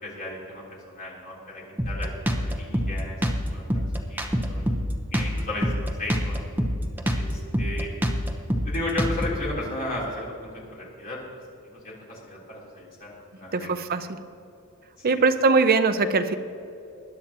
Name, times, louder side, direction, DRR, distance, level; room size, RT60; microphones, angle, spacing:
voice 1, 0.0-3.2 3.4-3.8 4.1-4.7 5.1-6.4 7.1-7.9 8.7-11.4 11.7-13.7 15.0-15.2, left 2 dB, 40° left, -5 dB, 3.5 m, -35 dB
Drum kit, 1.8-9.5, equal, 10° right, 0.9 m, -26 dB
voice 2, 13.5-14.1 15.0-16.3, right 4 dB, 45° right, 10 dB, 0.6 m, -21 dB
20.0 x 10.5 x 2.9 m, 2.6 s
head